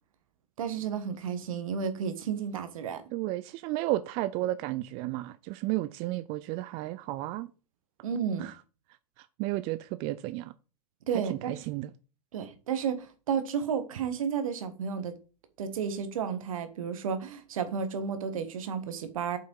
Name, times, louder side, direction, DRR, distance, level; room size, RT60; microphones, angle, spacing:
voice 1, 0.6-3.0 8.0-8.5 11.1-11.6 12.3-15.1 15.6-19.4, right 7 dB, 55° right, 1.5 m, -32 dB
voice 2, 3.1-7.5 8.4-8.5 9.2-10.5 11.3-11.9, right 16 dB, 30° right, 0.4 m, -33 dB
7.8 x 5.5 x 4.6 m
figure-of-eight pair, 100°, 20 cm